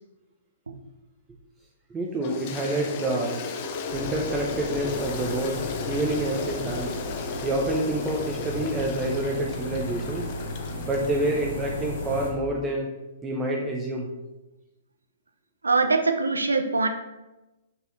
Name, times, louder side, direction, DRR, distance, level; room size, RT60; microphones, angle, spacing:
voice 1, 1.9-3.4 3.9-7.0 7.4-10.3 10.8-12.9 13.2-14.1, right 2 dB, 15° right, 0 dB, 0.8 m, -28 dB
Toilet flush, 2.2-11.6, left 5 dB, 40° left, 0.7 m, -35 dB
sound 1, 3.9-12.3, left 2 dB, 60° left, 1.6 m, -34 dB
voice 2, 15.6-16.9, right 3 dB, 80° right, 6 dB, 0.7 m, -23 dB
5.2 x 4.5 x 4.1 m, 1.0 s
figure-of-eight pair, 115°, 0 cm